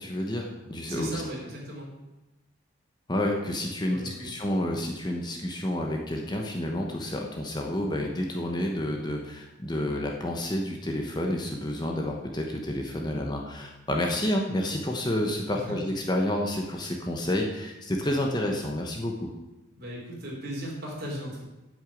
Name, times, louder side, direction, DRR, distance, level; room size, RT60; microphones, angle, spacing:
voice 1, 0.0-1.2 3.1-19.3, left 1 dB, 20° left, 1 dB, 1.0 m, -29 dB
voice 2, 0.9-1.9 3.9-4.3 15.5-15.8 19.7-21.4, equal, 50° right, -3 dB, 3.7 m, -37 dB
8.9 x 6.3 x 8.4 m, 1.0 s
head